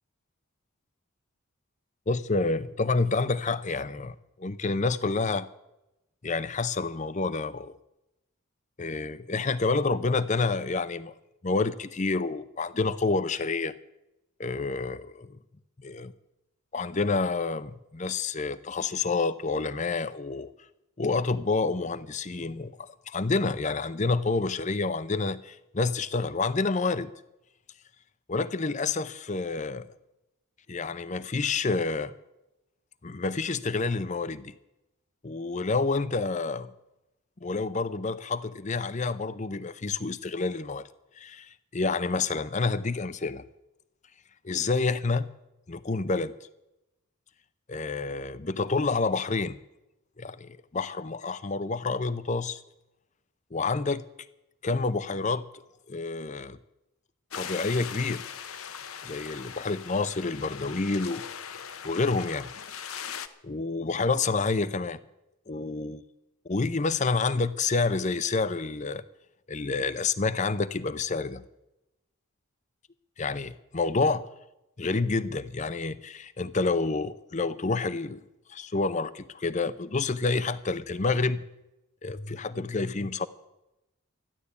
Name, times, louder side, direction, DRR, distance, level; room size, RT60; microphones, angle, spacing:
voice 1, 2.1-5.5 6.2-7.7 8.8-11.1 11.4-13.7 14.4-15.4 15.8-16.1 16.7-20.5 21.0-27.1 28.3-29.9 30.7-32.1 33.0-34.5 35.2-36.7 37.4-40.9 41.2-43.4 44.4-45.3 45.7-46.3 47.7-49.6 50.2-52.6 53.5-54.0 54.6-55.5 55.9-56.6 57.3-58.2 59.0-61.2 61.8-62.5 63.4-65.0 65.5-66.0 66.5-69.0 69.5-71.4 73.2-74.3 74.8-78.2 78.5-81.4 82.0-83.3, left 3 dB, 35° left, 15 dB, 0.6 m, -28 dB
sound 1, 57.3-63.3, left 7 dB, 85° left, 1.0 m, -40 dB
13.5 x 11.0 x 8.4 m, 0.93 s
head